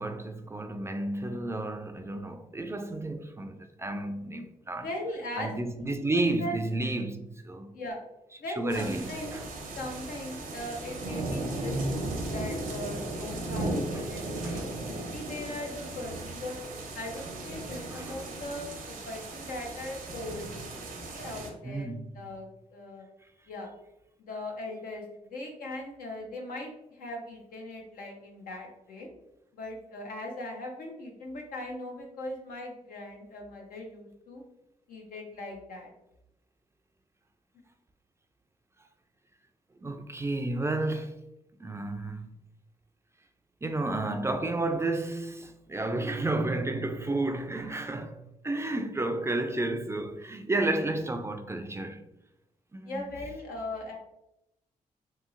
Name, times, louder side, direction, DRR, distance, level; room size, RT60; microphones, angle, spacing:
voice 1, 0.0-4.9 5.4-7.7 8.6-9.4 13.9-14.0 14.4-14.6 17.9-18.2 21.6-22.1 39.8-41.1 41.6-42.4 43.6-48.2 48.4-52.0 52.7-53.0, right 2 dB, 20° right, 0.3 m, -31 dB
voice 2, 4.8-6.6 7.7-8.0 8.4-9.4 9.7-16.5 16.9-18.7 19.1-20.5 20.9-21.9 22.1-23.0 23.5-23.7 24.2-25.0 25.3-29.1 29.5-34.4 34.9-35.9 44.0-44.1 52.8-54.0, left 1 dB, 85° left, 0.7 m, -39 dB
sound 1, 8.7-21.5, right 2 dB, 75° right, 0.6 m, -36 dB
2.9 x 2.8 x 2.4 m
cardioid pair, 65°, 15 cm